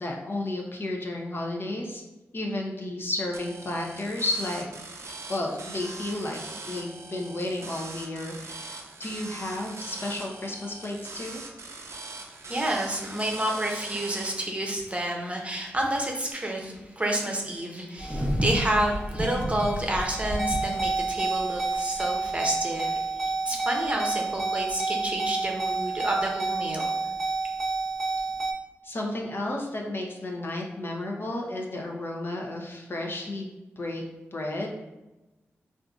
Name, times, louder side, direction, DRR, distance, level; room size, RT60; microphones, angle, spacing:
voice 1, 0.0-2.0 2.3-4.7 5.3-6.4 6.7-11.4 28.8-34.0 34.3-34.7, left 2 dB, 45° left, 0 dB, 0.7 m, -32 dB
sound 1, 3.3-14.3, right 3 dB, 65° right, 0.5 m, -41 dB
voice 2, 12.4-27.0, right 1 dB, 25° right, 0 dB, 0.7 m, -29 dB
sound 2, 18.0-28.5, right 2 dB, ahead, 0.9 m, -29 dB
3.6 x 2.5 x 2.3 m, 1.0 s
supercardioid pair, 40°, 5 cm